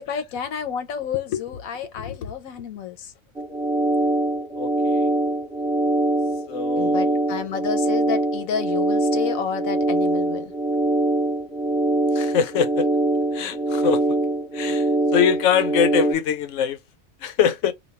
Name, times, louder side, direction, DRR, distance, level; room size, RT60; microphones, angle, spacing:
voice 1, 0.0-3.1 6.8-10.5, left 8 dB, 85° left, 1.2 m, -30 dB
sound 1, 3.4-16.1, right 2 dB, 5° right, 0.6 m, -23 dB
voice 2, 4.6-5.1 6.5-7.2 12.1-12.9 13.3-14.2 14.5-16.8 17.2-17.7, left 8 dB, 70° left, 0.9 m, -23 dB
3.0 x 2.3 x 4.1 m
omnidirectional pair, 1.4 m